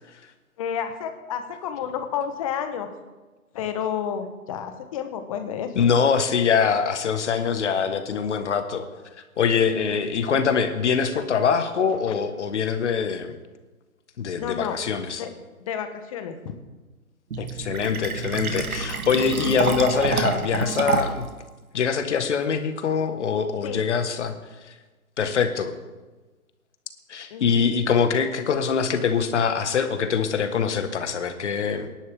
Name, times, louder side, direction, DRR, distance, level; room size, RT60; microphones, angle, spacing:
voice 1, 0.6-2.9 3.5-5.9 9.5-10.0 14.4-14.8 15.2-15.3 15.6-16.5 19.3-19.5 23.6-23.8 27.3-27.6, left 8 dB, 25° left, 8 dB, 1.0 m, -31 dB
voice 2, 5.7-8.9 9.4-13.4 14.2-15.2 17.4-21.3 21.7-24.3 24.6-24.7 25.2-25.7 27.1-31.9, left 6 dB, 55° left, 8 dB, 1.6 m, -23 dB
Fill (with liquid), 17.3-21.3, right 5 dB, 80° right, 1.6 m, -27 dB
23.5 x 11.0 x 3.6 m, 1.2 s
hypercardioid pair, 150°, 43 cm